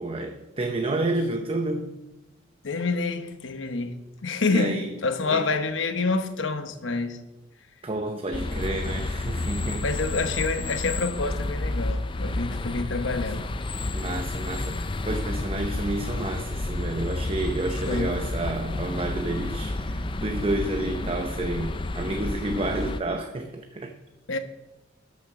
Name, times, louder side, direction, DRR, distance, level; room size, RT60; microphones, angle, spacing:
voice 1, 0.0-2.0 4.5-4.9 5.3-5.6 7.8-9.9 12.8-13.0 13.9-24.0, right 2 dB, 30° right, 0.7 m, -30 dB
voice 2, 2.6-7.2 9.8-13.5 17.9-18.1 24.3-24.4, left 3 dB, 85° left, 1.0 m, -27 dB
sound 1, 8.3-23.0, left 2 dB, 25° left, 0.5 m, -30 dB
13.5 x 6.4 x 5.9 m
head